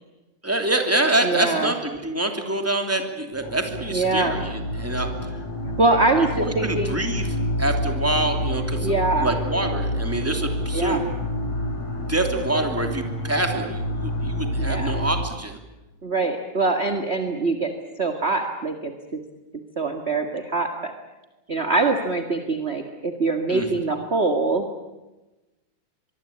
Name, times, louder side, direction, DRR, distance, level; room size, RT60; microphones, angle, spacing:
voice 1, 0.4-5.1 6.4-7.3 7.6-11.0 12.1-15.6 23.5-23.7, right 2 dB, 5° right, 4 dB, 2.4 m, -26 dB
voice 2, 1.2-1.7 3.9-4.4 5.8-7.0 8.8-9.3 10.7-11.0 14.6-15.0 16.0-17.7 18.0-19.2 19.8-20.9 21.5-24.7, right 3 dB, 30° right, 5 dB, 1.2 m, -23 dB
sound 1, 3.3-15.2, left 1 dB, 55° left, 5.2 m, -28 dB
24.0 x 23.5 x 8.6 m, 1.1 s
omnidirectional pair, 3.6 m